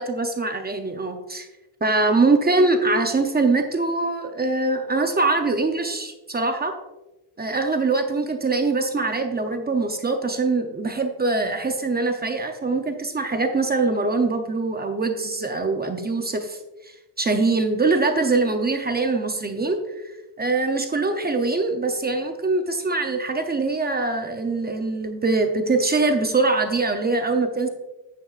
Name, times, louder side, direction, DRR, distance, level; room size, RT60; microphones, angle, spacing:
voice 1, 0.0-1.5 1.8-6.7 7.4-16.6 17.2-19.8 20.4-27.7, right 3 dB, 20° right, 5 dB, 0.6 m, -23 dB
10.5 x 9.3 x 2.4 m, 1.0 s
wide cardioid pair, 175°, 45 cm